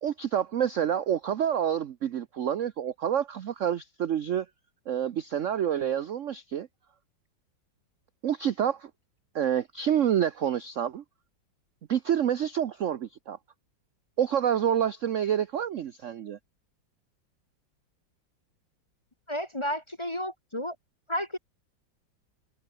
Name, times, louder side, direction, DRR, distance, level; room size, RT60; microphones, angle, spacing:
voice 1, 0.0-4.5 4.9-6.7 8.2-8.9 9.3-11.0 11.9-13.4 14.2-16.4, right 9 dB, 60° right, 0.8 m, -28 dB
voice 2, 19.3-20.8 21.1-21.4, equal, 15° left, 1.3 m, -32 dB
omnidirectional pair, 2.0 m